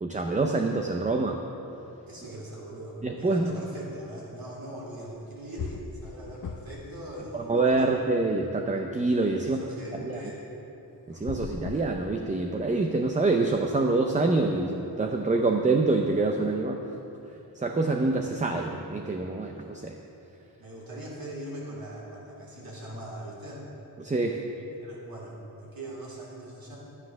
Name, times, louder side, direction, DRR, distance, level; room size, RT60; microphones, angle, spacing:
voice 1, 0.0-1.4 3.0-3.5 7.3-9.6 10.0-10.2 11.1-16.8 17.5-20.0 24.0-24.4, right 3 dB, 20° right, 3 dB, 0.6 m, -26 dB
voice 2, 2.1-8.0 9.4-10.4 20.6-23.7 24.6-26.8, right 1 dB, 55° right, -5 dB, 3.4 m, -41 dB
sound 1, 5.2-5.3 5.6-6.9 7.2-8.3 11.1-12.7, left 5 dB, 50° left, 0.6 m, -39 dB
11.5 x 9.9 x 6.3 m, 2.9 s
wide cardioid pair, 145°, 41 cm